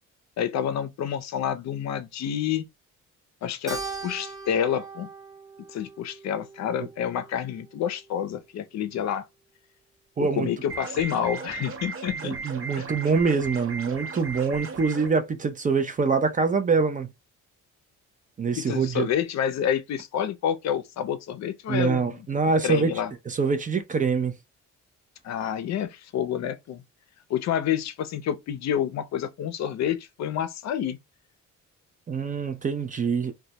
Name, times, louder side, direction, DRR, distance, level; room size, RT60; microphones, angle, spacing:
voice 1, 0.4-2.6 3.4-5.1 5.7-9.2 10.2-12.4 12.8-12.9 18.6-22.3 22.6-23.1 25.2-26.8 27.3-31.0, left 9 dB, 65° left, 0.5 m, -28 dB
Keyboard (musical), 3.7-8.3, right 4 dB, 10° right, 0.8 m, -40 dB
voice 2, 10.2-10.5 12.2-17.1 18.4-19.1 21.7-22.9 23.3-24.4 32.1-33.3, right 5 dB, 25° right, 0.4 m, -25 dB
sound 1, 10.7-15.1, right 4 dB, 45° right, 0.8 m, -36 dB
2.2 x 2.0 x 2.7 m
cardioid pair, 90°, 30 cm